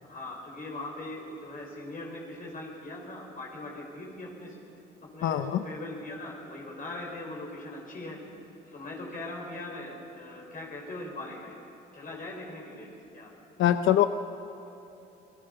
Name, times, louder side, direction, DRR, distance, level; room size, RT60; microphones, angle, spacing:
voice 1, 0.0-4.6 5.0-8.2 8.7-11.6 11.9-12.9 13.1-13.3, left 2 dB, 45° left, -2 dB, 5.7 m, -40 dB
voice 2, 5.2-5.6 13.6-14.1, left 12 dB, 80° left, 9 dB, 0.8 m, -23 dB
29.5 x 21.0 x 7.0 m, 2.9 s
cardioid pair, 90°, 20 cm